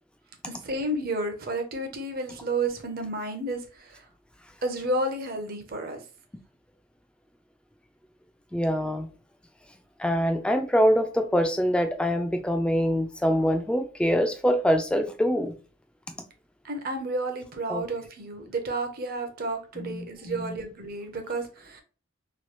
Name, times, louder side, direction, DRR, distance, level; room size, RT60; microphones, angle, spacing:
voice 1, 0.5-4.1 4.6-6.0 16.6-21.8, right 2 dB, 50° right, 0.6 m, -31 dB
voice 2, 8.5-9.1 10.0-15.5 17.7-17.8 19.8-20.6, equal, 5° left, 0.3 m, -24 dB
3.0 x 2.2 x 2.9 m
head